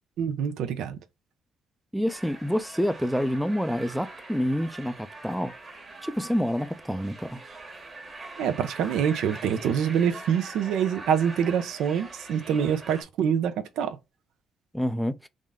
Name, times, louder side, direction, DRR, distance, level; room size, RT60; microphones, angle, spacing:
voice 1, 0.2-1.0 8.4-14.0, right 8 dB, 85° right, 0.6 m, -26 dB
voice 2, 1.9-5.5 6.0-7.4 14.7-15.3, equal, ahead, 0.4 m, -27 dB
sound 1, 2.1-13.0, right 2 dB, 35° right, 1.2 m, -43 dB
3.7 x 2.1 x 3.5 m
cardioid pair, 90°, 0 cm